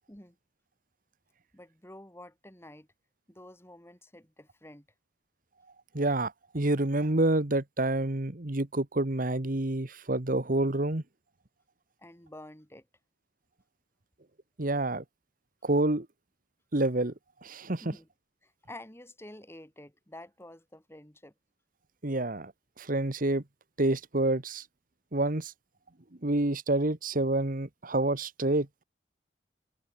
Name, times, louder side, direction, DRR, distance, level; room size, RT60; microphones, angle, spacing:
voice 1, 1.5-2.9 3.3-4.9 12.0-12.9 17.8-18.1 18.4-21.3, left 1 dB, 15° left, 3.6 m, -49 dB
voice 2, 5.9-11.0 14.6-15.0 15.6-16.1 16.7-17.1 17.4-17.8 22.0-22.5 22.8-23.4 23.8-24.6 25.1-25.5 26.2-28.7, right 2 dB, 50° right, 1.5 m, -28 dB
head